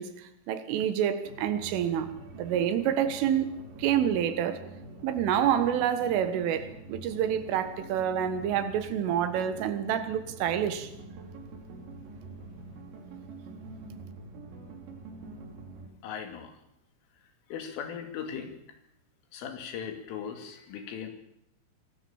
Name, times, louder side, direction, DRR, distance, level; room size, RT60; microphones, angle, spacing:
voice 1, 0.0-2.1 2.4-4.7 5.0-10.9, right 9 dB, 90° right, 4.1 m, -28 dB
sound 1, 1.2-15.9, right 3 dB, 70° right, 5.7 m, -46 dB
voice 2, 16.0-16.6 17.5-18.6 19.3-21.1, left 7 dB, 85° left, 5.1 m, -38 dB
25.5 x 19.0 x 7.3 m
omnidirectional pair, 5.6 m